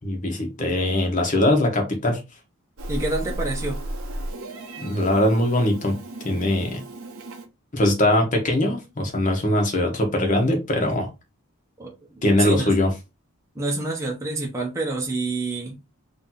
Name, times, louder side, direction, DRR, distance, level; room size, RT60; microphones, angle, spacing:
voice 1, 0.1-2.2 4.8-6.0 6.2-6.8 7.7-11.1 12.2-12.9, left 1 dB, 35° left, 1.3 m, -21 dB
Meow, 2.8-7.5, right 1 dB, 75° right, 0.9 m, -34 dB
voice 2, 2.9-3.8 11.8-12.7 13.5-15.8, right 2 dB, 15° right, 0.9 m, -28 dB
3.6 x 2.9 x 3.9 m
head